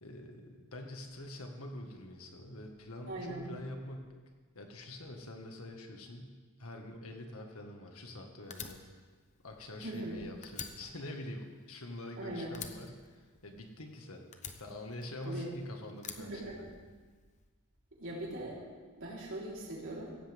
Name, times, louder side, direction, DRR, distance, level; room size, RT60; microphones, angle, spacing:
voice 1, 0.0-4.1 4.5-6.3 6.6-9.1 9.4-14.2 14.5-16.6, left 1 dB, 70° left, 3 dB, 2.0 m, -45 dB
voice 2, 3.1-3.5 9.8-10.2 12.2-12.5 15.2-15.5 16.2-16.7 18.0-18.6 19.0-20.2, right 1 dB, 60° right, -5 dB, 4.2 m, -40 dB
Fire, 8.5-10.1 10.4-12.2 12.5-13.9 14.3-15.5 16.0-17.2, left 6 dB, 35° left, 1.0 m, -47 dB
16.0 x 16.0 x 3.7 m, 1.4 s
head